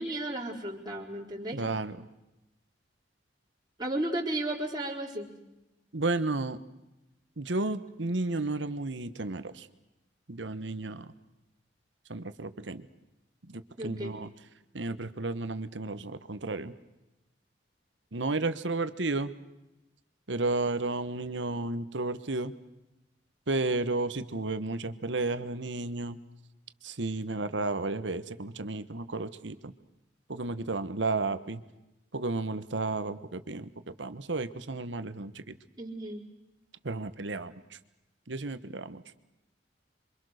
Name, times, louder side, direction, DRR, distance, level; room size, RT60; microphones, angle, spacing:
voice 1, 0.0-1.6 3.8-5.3 13.8-14.1 35.8-36.2, right 1 dB, 25° right, -2 dB, 4.2 m, -34 dB
voice 2, 1.5-2.0 5.9-6.6 7.4-9.7 10.3-11.1 12.1-12.9 13.4-14.3 14.7-16.7 18.1-19.3 20.3-22.5 23.5-26.2 26.8-29.7 30.3-31.6 32.1-35.6 36.8-37.8 38.3-39.0, right 2 dB, 80° right, 12 dB, 1.3 m, -32 dB
28.0 x 24.5 x 6.6 m, 0.94 s
head